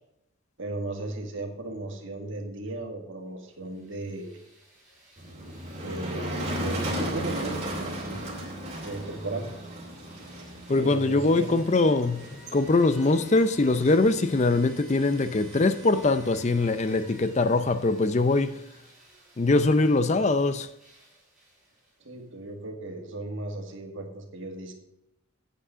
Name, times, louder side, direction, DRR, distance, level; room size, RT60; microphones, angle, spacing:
voice 1, 0.6-4.3 5.8-7.6 8.0-8.3 8.8-9.5 10.8-11.6 22.0-24.7, right 2 dB, 60° right, 1.9 m, -36 dB
sound 1, 3.5-22.2, right 1 dB, 5° right, 3.8 m, -53 dB
Motor vehicle (road), 5.2-17.8, equal, 30° right, 2.6 m, -37 dB
voice 2, 10.7-18.6 19.4-20.7, left 2 dB, 30° left, 0.5 m, -22 dB
8.6 x 8.2 x 5.6 m
head